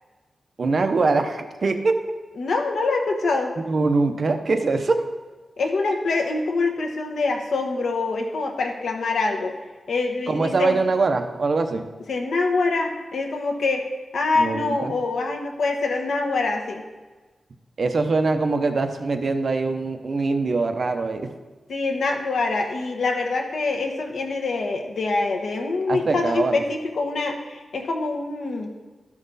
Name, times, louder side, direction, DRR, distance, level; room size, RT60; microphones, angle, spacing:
voice 1, 0.6-1.9 3.6-5.0 10.3-11.9 14.3-14.9 17.8-21.3 25.9-26.6, right 3 dB, 50° right, 7 dB, 0.7 m, -23 dB
voice 2, 2.4-3.5 5.6-9.6 9.9-10.8 12.1-13.8 14.1-16.8 21.7-28.7, left 3 dB, 80° left, 3 dB, 1.2 m, -25 dB
12.5 x 6.0 x 4.0 m, 1.3 s
wide cardioid pair, 125°, 0 cm